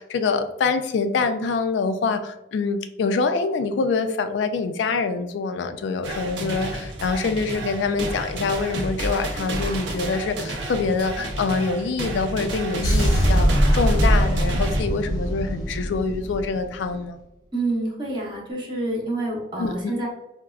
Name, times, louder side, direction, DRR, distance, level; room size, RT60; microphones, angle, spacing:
voice 1, 0.0-17.2 19.6-19.9, left 4 dB, 70° left, 9 dB, 0.3 m, -25 dB
sound 1, 6.0-14.8, right 2 dB, 75° right, 0.5 m, -31 dB
sound 2, 12.8-16.9, equal, 20° left, 0.7 m, -21 dB
voice 2, 17.5-20.1, right 2 dB, 25° right, -3 dB, 0.7 m, -27 dB
4.5 x 2.1 x 2.3 m, 0.94 s
head